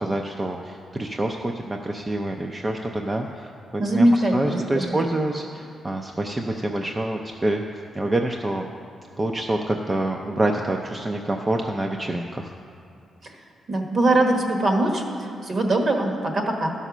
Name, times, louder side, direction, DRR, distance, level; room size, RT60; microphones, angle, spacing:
voice 1, 0.0-7.6 7.9-8.7 9.2-12.5, right 1 dB, 20° right, 2 dB, 0.5 m, -27 dB
voice 2, 3.8-4.8 13.2-13.3 13.7-16.7, right 1 dB, 45° right, 2 dB, 1.3 m, -22 dB
12.0 x 5.5 x 6.1 m, 2.6 s
cardioid pair, 130°, 0 cm